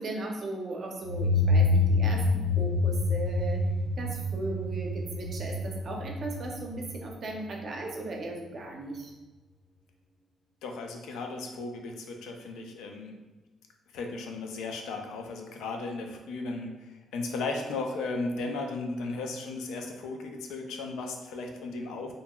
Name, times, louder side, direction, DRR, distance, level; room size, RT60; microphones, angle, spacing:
voice 1, 0.0-3.6 4.0-9.1, right 2 dB, 55° right, 1 dB, 0.5 m, -37 dB
sound 1, 1.0-7.6, left 2 dB, 60° left, 1.2 m, -27 dB
voice 2, 10.6-13.2 13.9-22.1, left 3 dB, 85° left, 3 dB, 0.4 m, -35 dB
2.7 x 2.4 x 2.2 m, 1.2 s
cardioid pair, 90°, 0 cm